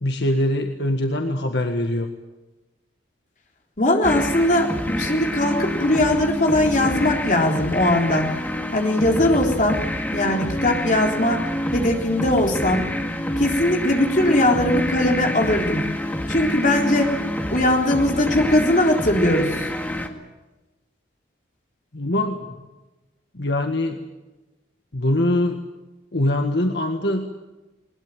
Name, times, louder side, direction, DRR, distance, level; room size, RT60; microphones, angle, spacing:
voice 1, 0.0-2.1 21.9-22.5 23.3-24.0 24.9-25.6 26.1-27.3, left 1 dB, 65° left, 4 dB, 1.7 m, -22 dB
voice 2, 3.8-8.3 8.7-9.8 10.1-12.9 13.4-15.8 16.3-17.2 17.5-19.7, left 1 dB, 45° left, 1 dB, 3.7 m, -20 dB
sound 1, 4.0-20.1, equal, 10° left, 1.9 m, -27 dB
20.5 x 20.5 x 9.1 m, 1.1 s
head